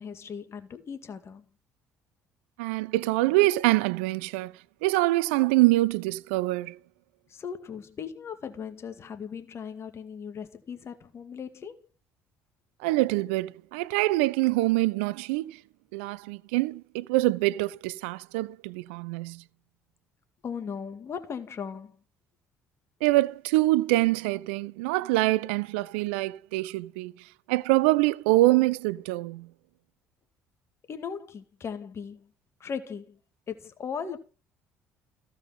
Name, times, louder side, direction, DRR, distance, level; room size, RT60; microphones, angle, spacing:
voice 1, 0.0-1.5 7.3-11.9 20.4-22.0 30.9-32.3 32.6-33.2 33.5-34.2, left 6 dB, 45° left, 2.1 m, -38 dB
voice 2, 2.6-4.5 4.8-6.8 12.8-15.6 15.9-19.4 23.0-29.5, right 19 dB, 80° right, 0.4 m, -25 dB
15.0 x 5.4 x 5.8 m
hypercardioid pair, 60°, 6 cm